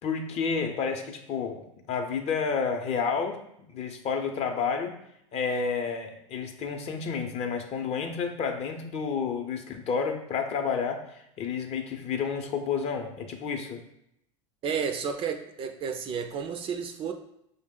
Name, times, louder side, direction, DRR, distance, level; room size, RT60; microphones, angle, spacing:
voice 1, 0.0-3.4 3.7-4.9 5.3-13.8, left 5 dB, 40° left, 5 dB, 0.6 m, -30 dB
voice 2, 14.6-17.1, right 6 dB, 35° right, 6 dB, 0.4 m, -31 dB
4.9 x 2.1 x 3.6 m, 0.77 s
hypercardioid pair, 105°, 16 cm